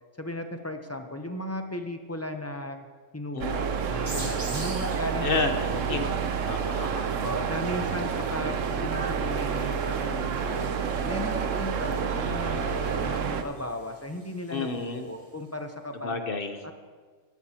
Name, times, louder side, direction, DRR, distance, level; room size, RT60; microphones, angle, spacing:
voice 1, 0.2-2.9 3.1-6.2 7.2-10.7 11.0-16.2 16.6-16.7, left 1 dB, 15° left, 6 dB, 0.6 m, -36 dB
voice 2, 3.3-3.9 5.2-5.5 5.9-6.1 6.5-7.2 14.5-15.1 15.9-16.6, left 4 dB, 50° left, 6 dB, 1.0 m, -31 dB
sound 1, 3.4-13.4, right 6 dB, 70° right, 1.1 m, -29 dB
sound 2, 4.1-15.4, right 2 dB, 25° right, 1.3 m, -47 dB
17.5 x 12.0 x 2.9 m, 1.5 s
omnidirectional pair, 1.4 m